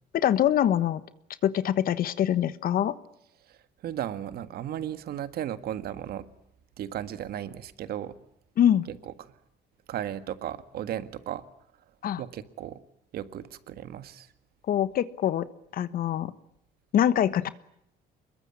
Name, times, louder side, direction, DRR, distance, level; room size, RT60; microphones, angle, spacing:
voice 1, 0.1-1.0 1.4-2.9 8.6-8.9 12.0-12.2 14.7-15.4 15.7-16.3 16.9-17.5, left 10 dB, 60° left, 15 dB, 1.3 m, -24 dB
voice 2, 3.8-6.3 6.8-8.2 8.9-9.3 9.9-11.4 12.2-12.8 13.1-14.3, right 11 dB, 65° right, 12 dB, 1.7 m, -35 dB
25.0 x 22.0 x 9.7 m, 0.76 s
cardioid pair, 110°, 17 cm